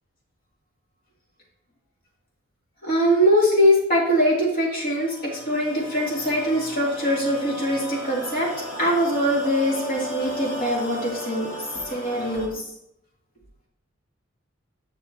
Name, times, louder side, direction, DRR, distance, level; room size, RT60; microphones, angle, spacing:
voice 1, 2.8-8.5 8.8-11.5 11.9-12.6, equal, 45° left, -5 dB, 3.2 m, -22 dB
sound 1, 4.6-12.5, left 1 dB, 80° left, 2.2 m, -36 dB
10.0 x 6.6 x 3.0 m, 0.76 s
head